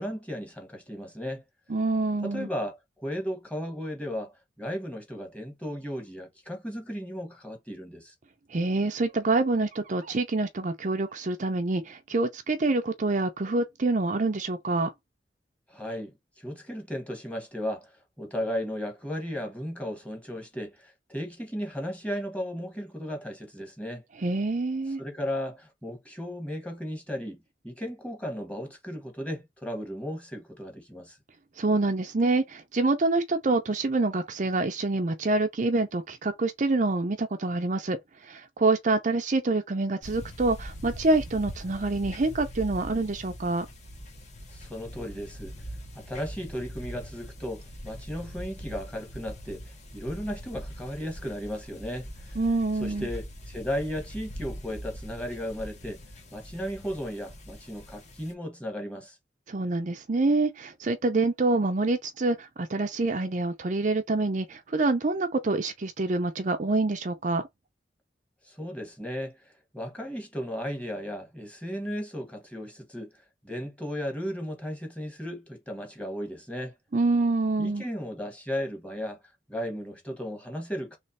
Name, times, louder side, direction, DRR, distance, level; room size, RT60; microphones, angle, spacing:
voice 1, 0.0-1.4 2.2-8.1 15.7-24.0 25.0-31.2 44.5-45.5 45.9-52.4 52.8-56.0 56.3-59.2 68.4-76.7 77.6-79.2 79.5-81.0, equal, 5° left, 1.4 m, -35 dB
voice 2, 1.7-2.5 8.5-14.9 24.2-25.0 31.6-43.7 52.4-53.1 59.5-67.5 76.9-77.8, right 3 dB, 40° right, 0.5 m, -26 dB
sound 1, 40.0-58.3, equal, 40° left, 1.2 m, -42 dB
3.2 x 3.2 x 4.1 m
head